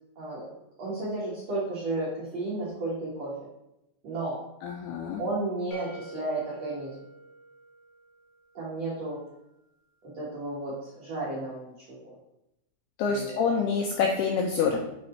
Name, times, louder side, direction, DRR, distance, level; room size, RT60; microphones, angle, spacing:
voice 1, 0.2-0.5 0.8-3.3 4.0-4.4 5.2-6.9 8.5-9.2 10.1-12.1 13.1-13.4, right 2 dB, 55° right, -7 dB, 1.9 m, -33 dB
voice 2, 4.6-5.2 13.0-14.8, left 5 dB, 85° left, 1 dB, 2.3 m, -26 dB
sound 1, 5.7-8.6, right 1 dB, 70° left, 3.4 m, -48 dB
8.2 x 4.3 x 4.4 m, 0.86 s
omnidirectional pair, 5.4 m